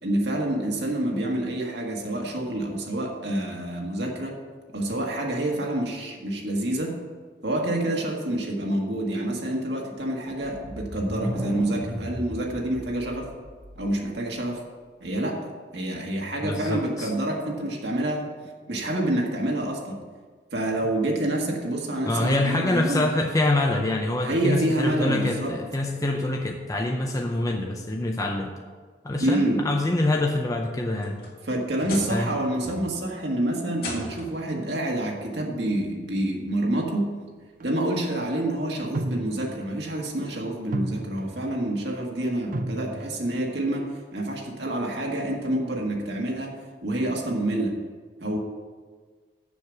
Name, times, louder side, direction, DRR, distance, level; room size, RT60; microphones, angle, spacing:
voice 1, 0.0-4.4 4.7-7.0 7.4-13.3 13.7-14.6 15.0-15.4 15.7-18.2 18.7-20.0 20.5-23.0 24.2-25.5 29.2-29.6 31.4-37.1 37.6-46.6 46.8-47.8 48.2-48.4, right 1 dB, 70° right, 0 dB, 1.7 m, -27 dB
sound 1, 10.4-14.1, equal, 5° right, 1.6 m, -36 dB
voice 2, 16.4-17.1 22.1-28.5 29.0-31.2 32.1-32.3, left 2 dB, 20° left, 1 dB, 0.6 m, -25 dB
sound 2, 30.9-32.3 32.6-33.1 33.7-34.4 35.6-35.7 36.3-36.4 38.0-38.1, left 2 dB, 55° left, 2.1 m, -38 dB
sound 3, 37.6-37.7 38.9-39.7 40.1-40.3 40.7-41.6 42.5-43.3 43.7-43.9, right 1 dB, 50° right, 0.6 m, -33 dB
7.1 x 6.6 x 7.2 m, 1.5 s
head